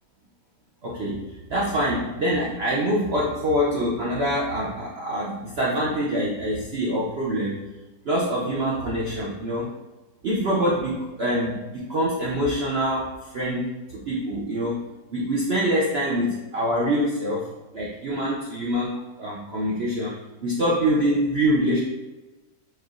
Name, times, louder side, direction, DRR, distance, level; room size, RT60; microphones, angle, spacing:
voice 1, 0.8-7.6 8.1-9.7 10.2-14.8 15.1-17.5 17.7-21.8, equal, 75° right, -5 dB, 0.5 m, -25 dB
4.5 x 3.1 x 2.4 m, 1.1 s
omnidirectional pair, 1.8 m